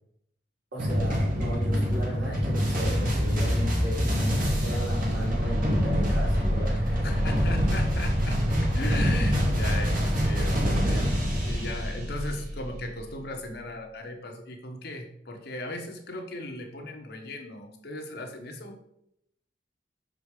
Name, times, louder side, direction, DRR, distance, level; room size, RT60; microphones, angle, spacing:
voice 1, 0.7-4.0 4.5-7.1, equal, 70° right, -3 dB, 2.9 m, -35 dB
sound 1, 0.8-13.0, equal, 55° right, 2.1 m, -25 dB
voice 2, 7.0-11.2 11.4-18.8, left 2 dB, 65° left, 3 dB, 1.2 m, -37 dB
6.1 x 5.2 x 4.8 m, 0.76 s
head